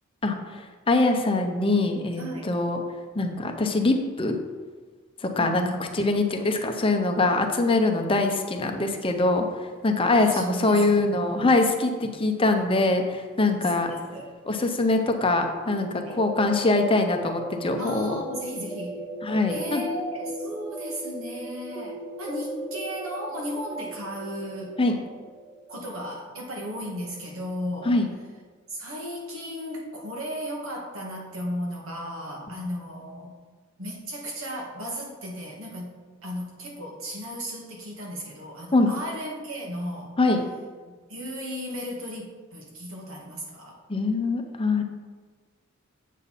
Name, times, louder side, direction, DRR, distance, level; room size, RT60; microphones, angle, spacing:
voice 1, 0.2-2.8 3.1-4.3 5.2-5.6 5.9-9.5 9.8-13.9 14.5-18.2 19.2-19.8 24.8-25.0 27.8-28.1 32.5-32.6 38.7-38.9 40.2-40.4 43.9-44.8, left 2 dB, 25° left, 4 dB, 0.7 m, -23 dB
voice 2, 2.1-2.6 5.4-5.8 10.2-11.6 13.9-14.3 15.9-16.2 17.8-19.0 19.5-24.8 25.7-28.0 28.7-33.4 33.8-40.2 41.1-43.8, equal, 75° right, -1 dB, 1.9 m, -35 dB
sound 1, 15.7-27.4, right 1 dB, 5° right, 0.8 m, -38 dB
8.3 x 6.9 x 4.1 m, 1.4 s
head